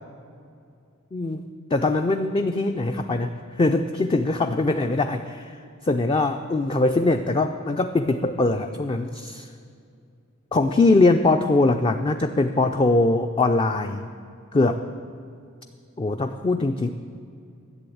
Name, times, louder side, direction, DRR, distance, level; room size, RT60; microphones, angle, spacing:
voice 1, 1.1-1.4 1.7-3.3 3.6-9.5 10.5-14.1 14.5-14.8 16.0-16.9, left 2 dB, 25° left, 7 dB, 0.4 m, -22 dB
11.0 x 7.8 x 8.4 m, 2.4 s
head